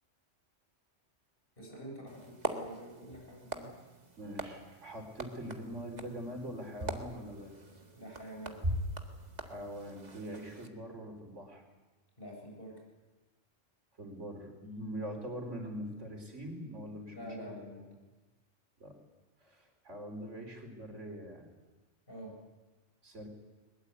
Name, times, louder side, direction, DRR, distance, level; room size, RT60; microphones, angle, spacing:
voice 1, 1.6-3.7 8.0-8.6 12.2-12.7 17.1-18.0 22.1-22.3, equal, 50° left, 0 dB, 8.1 m, -47 dB
sound 1, 2.1-10.7, right 1 dB, 35° right, 1.8 m, -41 dB
voice 2, 4.2-7.5 9.4-11.6 14.0-17.6 18.8-18.9 19.4-21.5 23.0-23.3, equal, 85° right, 3 dB, 4.3 m, -43 dB
21.5 x 21.0 x 8.3 m, 1.2 s
omnidirectional pair, 1.2 m